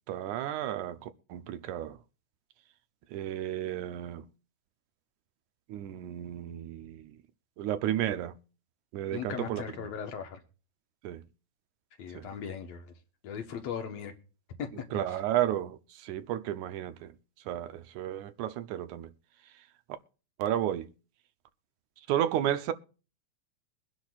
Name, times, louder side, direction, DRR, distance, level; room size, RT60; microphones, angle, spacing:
voice 1, 0.1-2.0 3.1-4.2 5.7-7.1 7.6-8.3 8.9-9.9 11.0-11.2 12.1-12.3 14.9-17.2 17.5-19.1 20.4-20.9 22.1-22.7, right 12 dB, 85° right, 2.1 m, -32 dB
voice 2, 9.1-10.4 12.0-12.9 13.2-14.1 14.6-14.7 15.1-15.2, left 7 dB, 65° left, 2.3 m, -38 dB
23.0 x 10.5 x 2.4 m
omnidirectional pair, 3.3 m